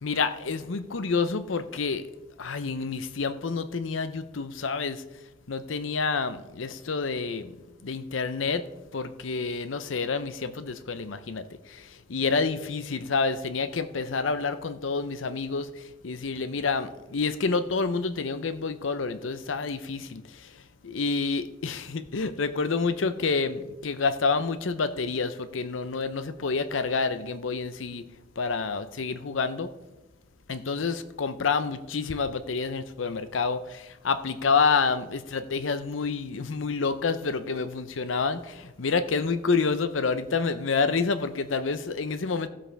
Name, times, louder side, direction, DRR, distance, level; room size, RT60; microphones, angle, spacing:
voice 1, 0.0-2.1 2.4-5.0 5.5-7.5 7.8-8.7 8.9-28.0 28.4-29.7 30.5-42.5, left 4 dB, 80° left, 12 dB, 0.7 m, -28 dB
15.5 x 7.5 x 3.4 m, 1.0 s
head